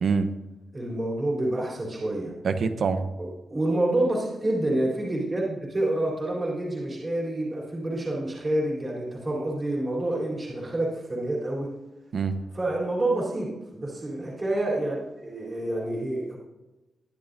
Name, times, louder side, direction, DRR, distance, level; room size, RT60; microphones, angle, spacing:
voice 1, 0.7-2.3 3.2-11.7 12.5-16.4, right 1 dB, 20° right, -5 dB, 3.7 m, -28 dB
voice 2, 2.4-3.1 12.1-12.4, right 5 dB, 50° right, 9 dB, 0.9 m, -25 dB
21.0 x 10.5 x 2.7 m, 1.0 s
wide cardioid pair, 165°, 0 cm